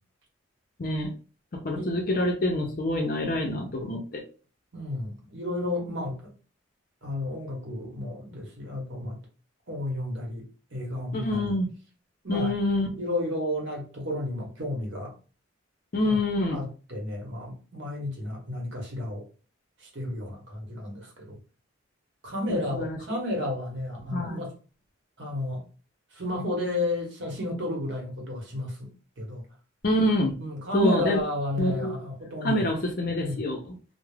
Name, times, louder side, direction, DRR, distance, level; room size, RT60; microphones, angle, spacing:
voice 1, 0.8-1.1 1.5-4.2 11.1-11.7 12.3-13.0 15.9-16.6 22.5-23.0 24.1-24.4 29.8-30.3 30.7-31.2 31.6-32.0 32.4-33.8, left 1 dB, 45° left, 0.5 m, -26 dB
voice 2, 4.7-6.3 7.0-9.2 9.7-10.4 10.7-11.5 12.2-12.5 13.0-15.1 16.0-16.2 16.5-19.2 19.8-21.4 22.2-24.5 25.2-25.6 26.1-28.9 29.2-29.4 30.4-32.7 33.0-33.4, left 1 dB, 60° right, 0.9 m, -32 dB
2.3 x 2.0 x 3.2 m
head